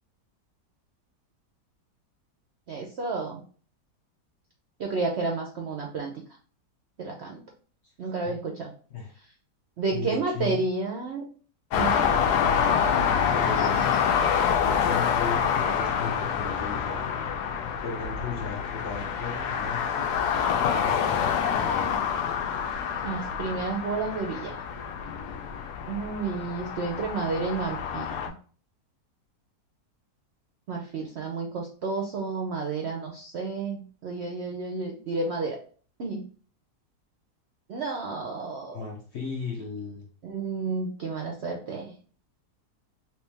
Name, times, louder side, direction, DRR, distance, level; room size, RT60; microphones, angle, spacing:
voice 1, 2.7-3.4 4.8-6.1 7.0-7.4 8.0-8.7 9.8-11.2 11.7-12.1 13.6-13.8 23.0-24.6 25.9-28.1 30.7-35.6 36.0-36.2 37.7-38.8 40.2-41.9, right 4 dB, 70° right, 1 dB, 0.6 m, -31 dB
voice 2, 8.0-8.4 8.9-9.1 9.9-10.6 12.5-13.0 13.3-14.1 14.6-17.1 17.8-20.1 20.7-22.0 38.7-40.1, left 5 dB, 60° left, 0 dB, 0.7 m, -36 dB
sound 1, 11.7-28.3, left 7 dB, 80° left, 1.2 m, -27 dB
3.2 x 3.0 x 3.3 m, 0.42 s
omnidirectional pair, 1.7 m